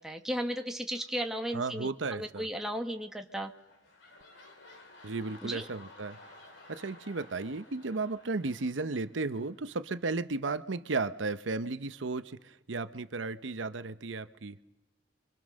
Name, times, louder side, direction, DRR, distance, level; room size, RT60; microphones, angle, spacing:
voice 1, 0.0-3.5 5.4-5.7, equal, 5° right, 1.4 m, -35 dB
voice 2, 1.5-2.5 5.0-6.2 6.7-14.6, right 3 dB, 85° right, 0.8 m, -34 dB
sound 1, 3.2-9.8 10.3-10.4, left 2 dB, 75° left, 4.1 m, -55 dB
29.5 x 24.0 x 6.4 m
head